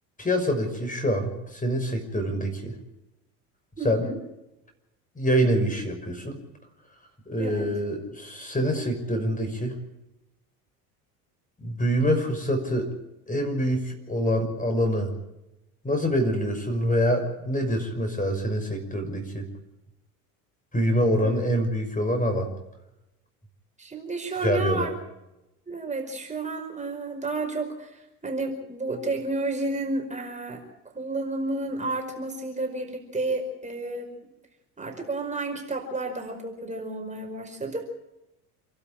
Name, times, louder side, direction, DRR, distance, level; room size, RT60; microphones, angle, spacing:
voice 1, 0.2-2.7 3.8-4.1 5.2-6.4 7.3-9.8 11.6-12.9 13.3-15.1 15.8-19.5 20.7-22.5 24.4-24.9, equal, 15° left, 5 dB, 6.1 m, -25 dB
voice 2, 3.8-4.2 7.4-7.7 21.2-21.5 23.8-24.9 25.7-30.6 30.9-34.1 34.8-37.9, right 2 dB, 15° right, 2 dB, 5.0 m, -31 dB
27.5 x 12.5 x 8.9 m, 0.92 s
hypercardioid pair, 70°, 45 cm